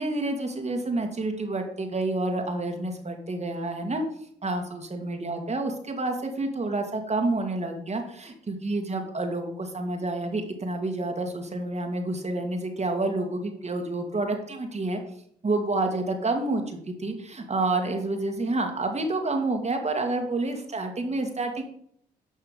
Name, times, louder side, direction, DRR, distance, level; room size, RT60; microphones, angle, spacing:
voice 1, 0.0-4.0 4.4-15.0 15.4-21.6, right 2 dB, 35° right, 4 dB, 2.1 m, -29 dB
10.5 x 5.5 x 5.2 m, 0.66 s
hypercardioid pair, 45°, 19 cm